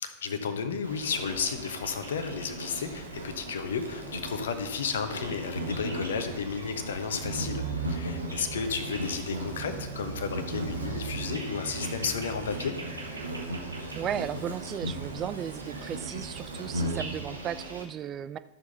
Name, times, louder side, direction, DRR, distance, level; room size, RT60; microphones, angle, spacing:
voice 1, 0.0-7.6 7.9-12.8, left 6 dB, 65° left, 8 dB, 1.0 m, -33 dB
Insect, 0.8-17.8, right 2 dB, 80° right, 1.4 m, -36 dB
voice 2, 14.0-18.4, right 9 dB, 30° right, 14 dB, 0.3 m, -35 dB
12.5 x 7.1 x 4.1 m, 0.98 s
figure-of-eight pair, 90°, 0 cm